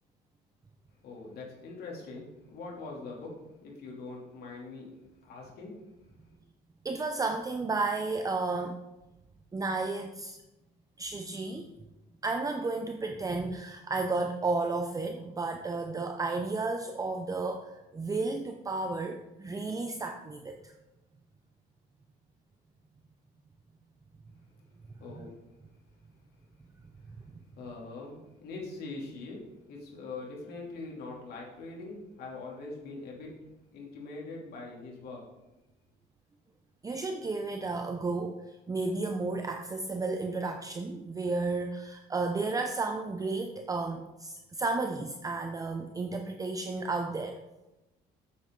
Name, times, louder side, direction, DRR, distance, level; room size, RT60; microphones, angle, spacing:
voice 1, 1.0-3.4 3.6-4.9 5.2-6.1 25.0-25.3 27.0-27.1 27.5-33.3 33.7-35.2, left 3 dB, 70° left, -2 dB, 2.9 m, -43 dB
voice 2, 6.8-8.8 9.5-10.4 11.0-11.7 12.2-20.7 25.2-25.3 36.8-47.4, right 3 dB, 20° right, 4 dB, 0.6 m, -33 dB
8.4 x 7.8 x 3.8 m, 0.98 s
cardioid pair, 110°, 17 cm